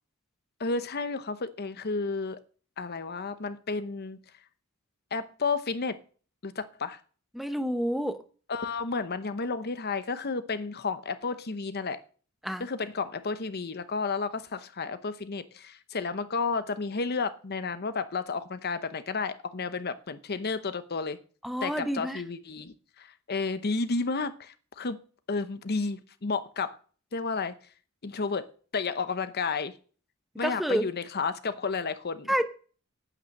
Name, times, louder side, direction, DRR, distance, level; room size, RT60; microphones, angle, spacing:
voice 1, 0.6-2.4 2.8-4.2 5.1-6.0 6.4-7.0 8.5-12.0 12.6-21.2 21.6-25.0 25.3-26.8 27.1-27.5 28.0-28.5 28.7-29.7 30.4-32.3, left 4 dB, 50° left, 0.8 m, -32 dB
voice 2, 7.3-8.2 12.4-12.7 21.4-22.2 30.4-30.8 32.3-32.4, equal, ahead, 0.9 m, -28 dB
9.0 x 8.9 x 6.6 m
head